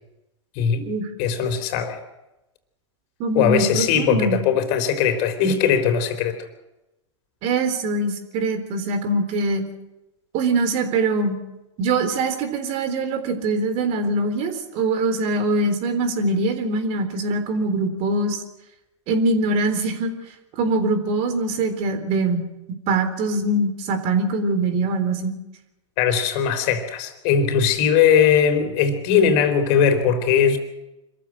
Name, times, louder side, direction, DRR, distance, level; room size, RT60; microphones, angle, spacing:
voice 1, 0.6-0.9 1.2-2.0 3.3-6.4 26.0-30.6, left 7 dB, 50° left, 8 dB, 4.0 m, -19 dB
voice 2, 3.2-4.4 7.4-9.6 10.3-11.4 11.8-18.4 19.1-20.1 20.6-22.4 22.9-25.3, right 2 dB, 45° right, 8 dB, 3.8 m, -23 dB
26.0 x 14.5 x 7.7 m, 0.96 s
hypercardioid pair, 115°, 16 cm